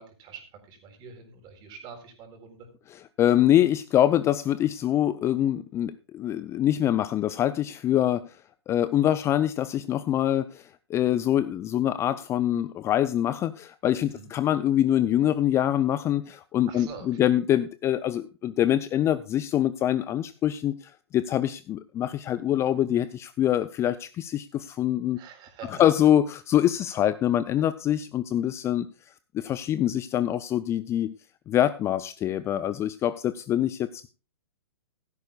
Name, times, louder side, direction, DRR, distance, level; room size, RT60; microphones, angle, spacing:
voice 1, 0.0-2.7 14.0-14.3 16.7-17.2 25.1-25.8, right 6 dB, 30° right, 5 dB, 4.1 m, -45 dB
voice 2, 3.2-8.3 8.7-25.2 25.7-28.9 29.3-31.1 31.5-34.1, left 11 dB, 20° left, 15 dB, 0.4 m, -24 dB
15.5 x 13.0 x 2.4 m, 0.33 s
hypercardioid pair, 120°, 14 cm